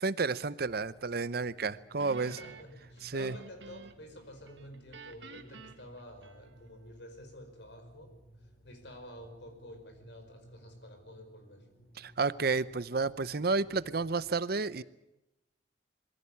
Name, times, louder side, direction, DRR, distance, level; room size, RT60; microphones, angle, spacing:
voice 1, 0.0-2.3 3.0-3.3 12.0-14.8, right 4 dB, 55° right, 17 dB, 0.7 m, -31 dB
sound 1, 0.6-14.3, equal, 55° left, 6.5 m, -59 dB
Guitar, 2.0-4.1 4.5-6.8, right 3 dB, 85° right, 2.0 m, -51 dB
voice 2, 2.2-11.7, equal, 70° left, 6 dB, 5.2 m, -50 dB
22.0 x 15.5 x 9.9 m, 0.93 s
head